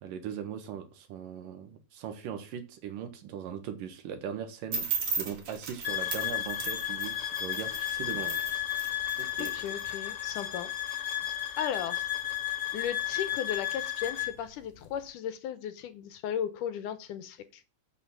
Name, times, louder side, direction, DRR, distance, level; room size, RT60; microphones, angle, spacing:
voice 1, 0.0-4.9 5.2-8.4 9.2-9.5, right 8 dB, 75° right, 3.0 m, -39 dB
sound 1, 4.7-9.9, right 5 dB, 45° right, 2.9 m, -36 dB
sound 2, 5.8-14.4, left 12 dB, 50° left, 2.0 m, -33 dB
voice 2, 9.4-10.7 11.3-12.1 12.5-17.6, left 9 dB, 75° left, 2.2 m, -36 dB
7.9 x 6.5 x 7.1 m
omnidirectional pair, 4.0 m